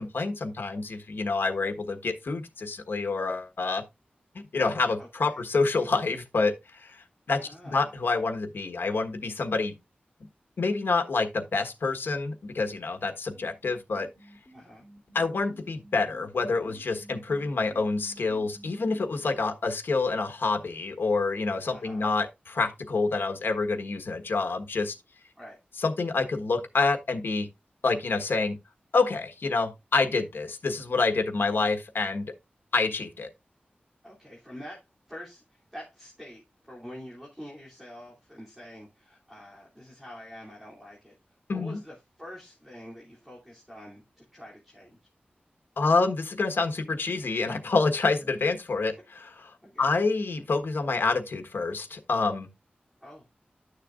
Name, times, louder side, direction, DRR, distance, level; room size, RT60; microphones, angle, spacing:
voice 1, 0.0-3.8 4.3-7.4 7.6-9.7 10.6-14.1 15.1-24.9 25.8-27.5 27.8-28.6 28.9-32.3 32.7-33.3 41.5-41.8 45.8-49.5 49.8-52.5, left 3 dB, 85° left, 1.3 m, -27 dB
voice 2, 5.0-5.4 7.4-7.9 14.5-14.9 21.7-22.1 25.4-25.6 34.0-34.8 35.1-41.1 41.5-45.0 49.6-49.9 53.0-53.3, equal, 10° right, 3.0 m, -46 dB
sound 1, 13.3-19.0, right 1 dB, 40° left, 3.4 m, -52 dB
11.5 x 6.7 x 2.5 m
wide cardioid pair, 105°, 4 cm